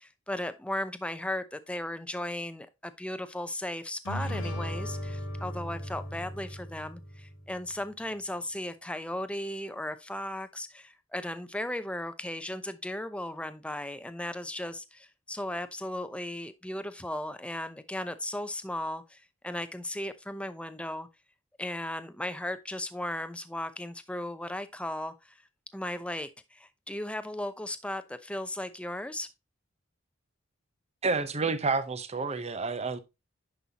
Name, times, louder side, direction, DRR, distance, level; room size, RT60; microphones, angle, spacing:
voice 1, 0.0-21.1 21.6-25.4 25.7-29.3, left 1 dB, 5° left, 0.6 m, -36 dB
sound 1, 4.0-7.7, equal, 80° left, 2.1 m, -37 dB
voice 2, 31.0-33.0, right 4 dB, 30° right, 0.8 m, -29 dB
10.5 x 5.4 x 2.9 m
head